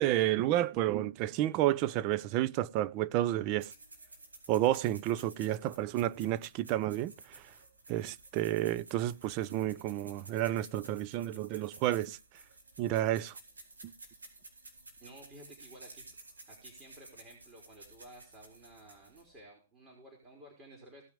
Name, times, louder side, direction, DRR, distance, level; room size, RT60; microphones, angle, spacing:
voice 1, 0.0-3.7 4.5-7.4 7.9-12.2 12.8-13.3, right 14 dB, 40° right, 0.6 m, -30 dB
sound 1, 3.6-19.4, right 2 dB, 90° right, 4.9 m, -54 dB
voice 2, 15.0-16.1 16.5-21.0, right 1 dB, 25° right, 4.4 m, -54 dB
17.5 x 6.0 x 5.0 m
hypercardioid pair, 115°, 0 cm